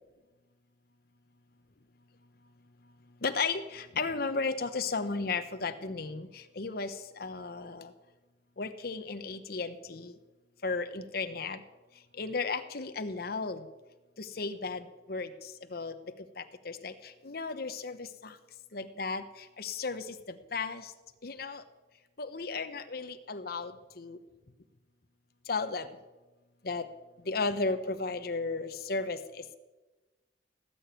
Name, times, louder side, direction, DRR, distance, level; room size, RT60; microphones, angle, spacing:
voice 1, 3.2-7.9 8.6-10.1 10.6-11.6 12.2-13.6 14.2-15.3 15.7-15.9 16.4-18.3 18.7-19.2 19.6-20.1 20.5-20.9 21.2-21.6 22.2-24.2 25.5-25.9 26.6-26.9 27.3-29.4, left 4 dB, 55° left, 9 dB, 0.9 m, -34 dB
17.5 x 7.0 x 9.1 m, 1.2 s
head